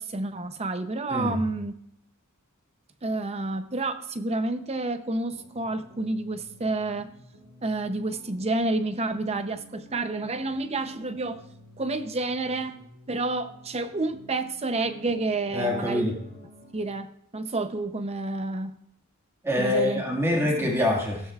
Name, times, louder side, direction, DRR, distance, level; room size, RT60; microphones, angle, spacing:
voice 1, 0.0-1.7 3.0-7.1 7.6-11.4 11.8-12.8 13.1-16.1 16.7-18.8 19.6-20.0 20.4-20.5, right 2 dB, 30° right, 0.7 m, -29 dB
voice 2, 1.1-1.4 15.5-16.2 19.4-21.2, left 1 dB, 10° right, 1.9 m, -25 dB
sound 1, 5.3-16.9, equal, 60° right, 4.4 m, -52 dB
16.5 x 14.0 x 2.4 m
head